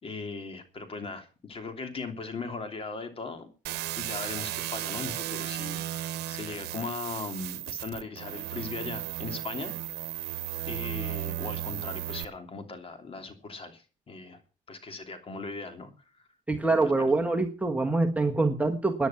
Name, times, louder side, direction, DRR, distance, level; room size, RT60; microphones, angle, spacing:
voice 1, 0.0-3.5 4.0-10.1 10.7-14.4 14.7-16.3 16.6-17.1, left 4 dB, 35° left, 7 dB, 3.0 m, -39 dB
sound 1, 3.7-12.3, right 14 dB, 75° right, 1.0 m, -35 dB
voice 2, 16.5-19.1, right 3 dB, 10° right, 3 dB, 1.4 m, -25 dB
15.5 x 10.5 x 5.8 m, 0.36 s
cardioid pair, 110°, 17 cm